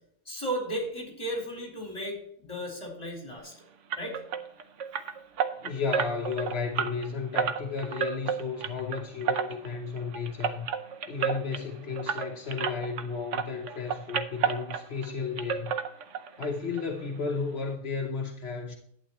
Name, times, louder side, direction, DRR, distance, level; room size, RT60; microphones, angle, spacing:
voice 1, 0.3-3.5 4.0-4.3, right 1 dB, 15° left, 4.1 m, -35 dB
sound 1, 3.9-13.1 13.3-15.1 15.4-16.5 16.7-16.9 17.3-17.4 17.7-17.8, right 7 dB, 70° right, 0.6 m, -32 dB
voice 2, 5.6-10.7 11.1-15.7 16.4-18.7, left 5 dB, 50° left, 0.8 m, -33 dB
11.5 x 9.3 x 3.0 m
omnidirectional pair, 2.3 m